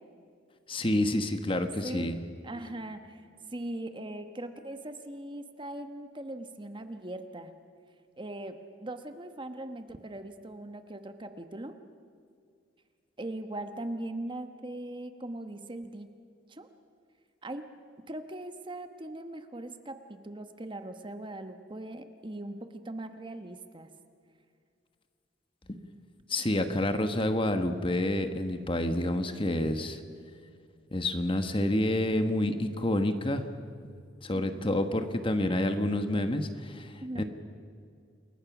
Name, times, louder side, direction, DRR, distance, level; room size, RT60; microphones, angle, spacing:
voice 1, 0.7-2.2 26.3-30.0 30.9-33.5 34.2-37.2, left 1 dB, 30° left, 8 dB, 1.3 m, -28 dB
voice 2, 2.4-3.2 3.5-7.5 8.2-8.6 8.8-11.7 13.2-16.1 16.5-16.7 17.4-17.7 18.1-23.9 37.0-37.2, right 1 dB, 25° right, 8 dB, 1.1 m, -40 dB
28.5 x 22.0 x 6.1 m, 2.3 s
head